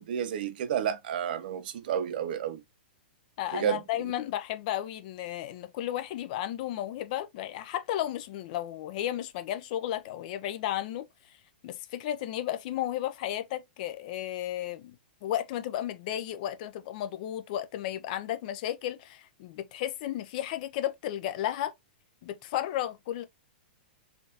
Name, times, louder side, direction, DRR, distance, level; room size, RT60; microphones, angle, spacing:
voice 1, 0.0-2.6 3.5-3.8, right 9 dB, 60° right, 0.6 m, -31 dB
voice 2, 3.4-11.1 11.6-15.0 15.2-21.7 22.2-23.2, left 12 dB, 50° left, 0.5 m, -33 dB
3.6 x 2.4 x 2.6 m
hypercardioid pair, 130°, 6 cm